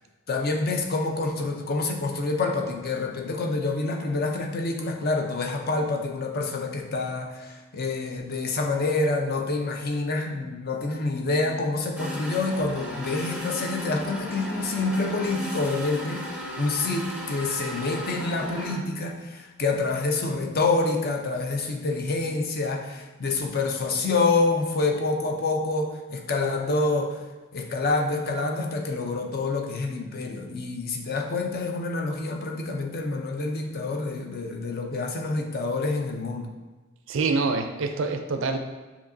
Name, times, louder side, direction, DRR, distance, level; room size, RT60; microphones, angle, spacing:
voice 1, 0.3-27.2 27.5-36.5, left 3 dB, 45° left, 2 dB, 0.6 m, -27 dB
sound 1, 12.0-18.8, equal, 5° right, 0.6 m, -35 dB
voice 2, 37.1-38.6, right 3 dB, 60° right, 6 dB, 0.4 m, -26 dB
7.2 x 2.8 x 2.6 m, 1.2 s
head